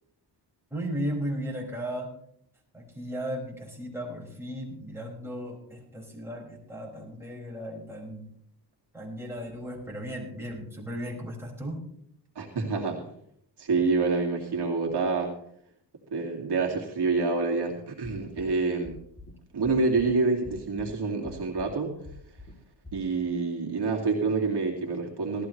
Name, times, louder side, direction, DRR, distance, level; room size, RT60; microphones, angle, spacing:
voice 1, 0.7-2.1 2.7-8.3 8.9-11.8, equal, 5° right, -2 dB, 5.8 m, -35 dB
voice 2, 12.4-13.0 13.6-15.3 16.1-19.0 19.5-21.9 22.9-25.5, right 4 dB, 65° right, 0 dB, 2.4 m, -27 dB
sound 1, 18.0-18.5 18.8-19.3 19.6-20.1 20.4-20.9 21.2-21.7 22.0-22.5 22.8-23.0, left 2 dB, 30° left, 3.2 m, -45 dB
18.0 x 14.0 x 3.3 m, 0.68 s
cardioid pair, 85°, 43 cm